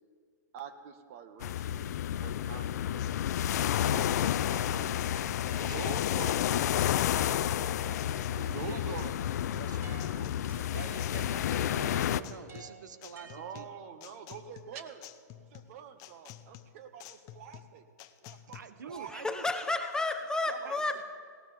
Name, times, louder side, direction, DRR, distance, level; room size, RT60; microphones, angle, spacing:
voice 1, 0.5-1.9 2.2-3.1 3.8-4.9 5.5-9.1 9.4-11.1 13.2-15.1 15.4-17.8 18.2-19.4 20.5-20.7, right 7 dB, 50° right, 8 dB, 1.6 m, -47 dB
sound 1, 1.4-12.2, left 11 dB, 65° left, 0.5 m, -30 dB
sound 2, 3.0-18.6, left 12 dB, 35° left, 0.7 m, -51 dB
sound 3, 4.5-6.3 7.2-8.6 9.8-13.9, right 3 dB, 30° right, 4.1 m, -53 dB
voice 2, 5.6-6.0 8.5-9.0 9.6-10.1 10.7-13.7 18.5-19.4 20.6-21.0, right 6 dB, 80° right, 13 dB, 0.8 m, -46 dB
voice 3, 19.1-21.0, left 2 dB, 5° left, 7 dB, 0.9 m, -31 dB
17.5 x 17.5 x 3.5 m, 2.1 s
hypercardioid pair, 120°, 10 cm